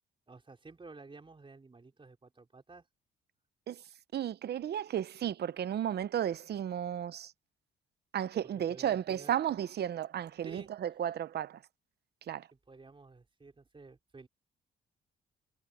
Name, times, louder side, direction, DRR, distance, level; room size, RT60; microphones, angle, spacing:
voice 1, 0.3-2.9 8.4-9.4 10.4-10.7 12.7-14.3, right 3 dB, 25° right, 4.4 m, -52 dB
voice 2, 4.1-7.3 8.1-11.6 12.3-12.5, right 10 dB, 55° right, 0.8 m, -34 dB
cardioid pair, 90°, 20 cm